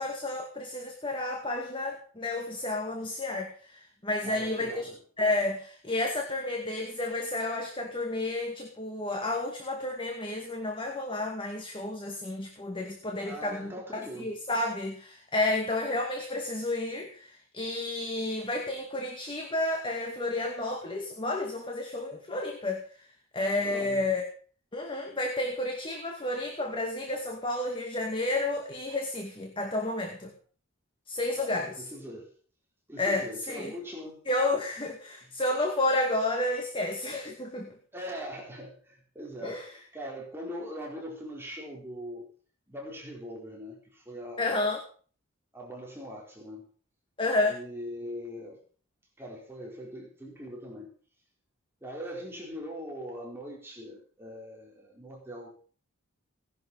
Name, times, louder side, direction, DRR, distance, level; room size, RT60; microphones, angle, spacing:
voice 1, 0.0-4.9 5.2-22.8 23.3-24.3 24.7-30.3 31.1-31.7 33.0-33.7 34.3-37.8 39.4-39.7 44.4-44.8 47.2-47.6, left 2 dB, 25° left, 3 dB, 2.2 m, -31 dB
voice 2, 4.2-5.0 13.2-14.3 23.6-24.0 31.4-32.3 32.9-34.2 37.9-42.3 42.7-44.5 45.5-46.7 47.5-48.6 49.2-50.9 51.8-55.5, equal, 10° right, -2 dB, 4.4 m, -41 dB
18.0 x 11.0 x 5.6 m, 0.43 s
head